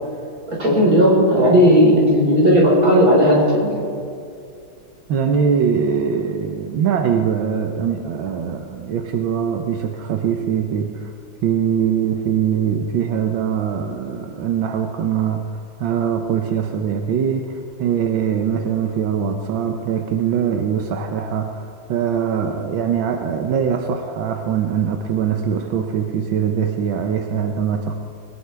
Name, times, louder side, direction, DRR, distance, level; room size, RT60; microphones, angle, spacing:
voice 1, 0.5-3.8, equal, 45° right, -4 dB, 5.1 m, -14 dB
voice 2, 5.1-11.1 11.4-27.9, right 7 dB, 85° right, 4 dB, 1.6 m, -22 dB
22.5 x 18.0 x 3.4 m, 2.5 s
omnidirectional pair, 2.1 m